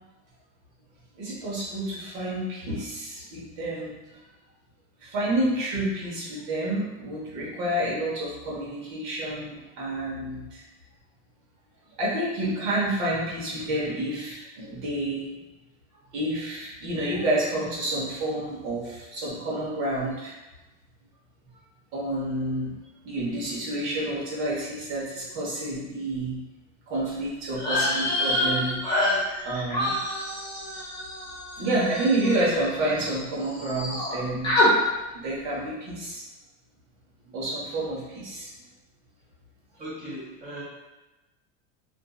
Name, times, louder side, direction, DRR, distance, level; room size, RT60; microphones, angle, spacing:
voice 1, 1.2-4.0 5.0-10.6 12.0-15.3 16.1-20.3 21.9-22.7 23.0-26.4 26.9-28.8 29.4-30.0 31.6-34.5 35.1-36.2 37.3-38.5, right 1 dB, 65° right, -6 dB, 1.1 m, -29 dB
sound 1, 27.5-33.2 33.4-34.1 34.4-34.7, left 1 dB, 15° left, 0.9 m, -27 dB
voice 2, 39.8-40.6, right 1 dB, 20° right, -7 dB, 1.0 m, -38 dB
2.6 x 2.5 x 2.3 m, 1.1 s
supercardioid pair, 125°, 35 cm